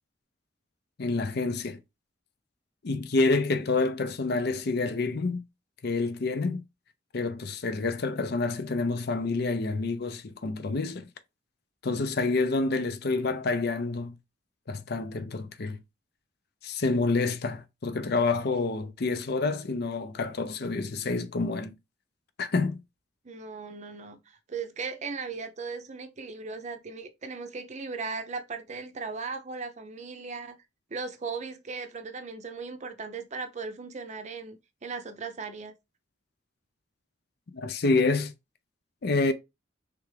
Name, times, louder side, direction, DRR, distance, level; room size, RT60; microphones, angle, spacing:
voice 1, 1.0-1.8 2.8-5.4 5.8-6.6 7.1-11.1 11.8-14.2 14.7-15.8 16.6-21.7 22.4-22.8 37.5-38.3 39.0-39.3, left 3 dB, 55° left, 0.6 m, -28 dB
voice 2, 23.2-30.6 30.9-35.7, right 4 dB, 40° right, 0.6 m, -37 dB
3.5 x 3.4 x 3.3 m
head